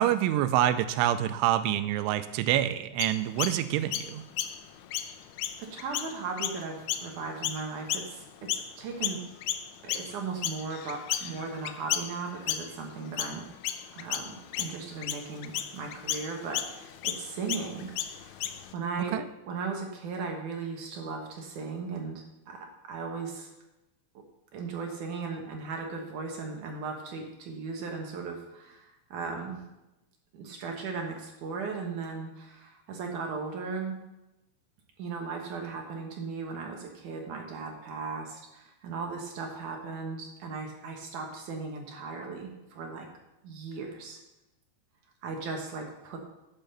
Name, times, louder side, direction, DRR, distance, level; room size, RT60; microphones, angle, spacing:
voice 1, 0.0-4.2 19.1-19.2, right 12 dB, 90° right, 12 dB, 3.1 m, -26 dB
Chirp tweet, 3.0-8.7 9.0-18.7, left 11 dB, 80° left, 2.9 m, -34 dB
voice 2, 5.6-9.2 9.8-13.4 13.9-19.2 19.5-23.5 24.1-24.2 24.5-29.6 30.3-34.0 35.0-43.1 43.4-44.2 45.2-46.2, right 4 dB, 70° right, 2 dB, 1.9 m, -37 dB
10.5 x 7.2 x 6.7 m, 0.94 s
omnidirectional pair, 5.4 m